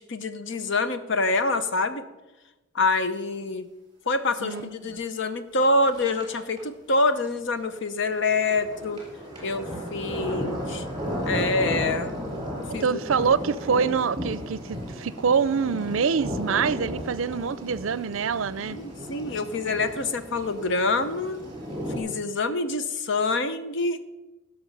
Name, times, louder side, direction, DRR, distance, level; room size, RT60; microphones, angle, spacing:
voice 1, 0.0-2.0 2.7-3.7 4.1-9.0 9.4-10.8 11.2-12.2 12.7-13.0 18.6-21.4 21.9-24.0, left 3 dB, 65° left, 11 dB, 0.9 m, -26 dB
voice 2, 4.4-5.0 12.7-18.8, right 6 dB, 75° right, 18 dB, 0.5 m, -25 dB
sound 1, 4.5-4.6 4.9-5.0 5.9-6.6 7.8-22.0, equal, 20° right, 3.9 m, -34 dB
16.5 x 6.2 x 5.4 m, 1.0 s
head